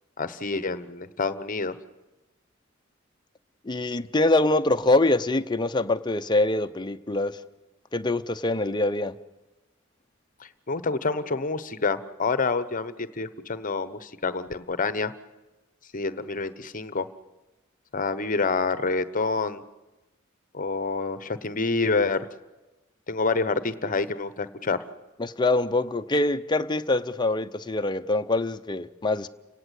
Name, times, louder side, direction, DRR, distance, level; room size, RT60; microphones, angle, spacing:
voice 1, 0.2-1.7 10.4-15.1 15.9-17.1 17.9-19.6 20.5-22.3 23.1-24.8, left 3 dB, 40° left, 14 dB, 1.0 m, -27 dB
voice 2, 3.7-7.3 7.9-9.1 25.2-29.3, left 2 dB, 20° left, 8 dB, 0.7 m, -24 dB
30.0 x 17.5 x 8.2 m, 1.1 s
head